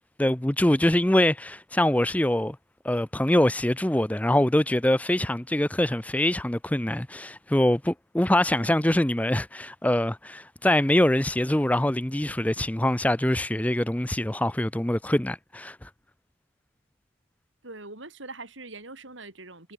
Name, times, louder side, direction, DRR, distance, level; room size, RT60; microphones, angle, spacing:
voice 1, 0.2-2.6 2.8-15.9, left 1 dB, 5° left, 0.5 m, -24 dB
voice 2, 17.6-19.7, right 3 dB, 75° right, 6.3 m, -43 dB
head